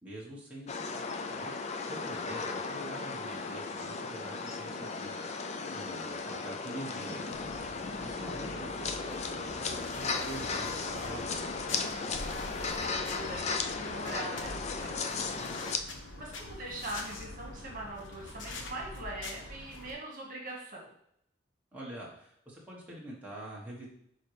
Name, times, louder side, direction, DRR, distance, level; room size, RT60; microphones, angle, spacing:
voice 1, 0.0-5.2 5.7-7.5 8.0-11.8 21.7-23.9, right 1 dB, 10° right, -5 dB, 1.4 m, -45 dB
sound 1, 0.7-15.8, left 4 dB, 35° left, 0.4 m, -36 dB
sound 2, 7.3-19.9, left 2 dB, 75° left, 1.0 m, -45 dB
voice 2, 7.7-8.6 12.1-20.9, right 1 dB, 45° right, -1 dB, 1.7 m, -43 dB
11.0 x 4.0 x 3.4 m, 0.70 s
head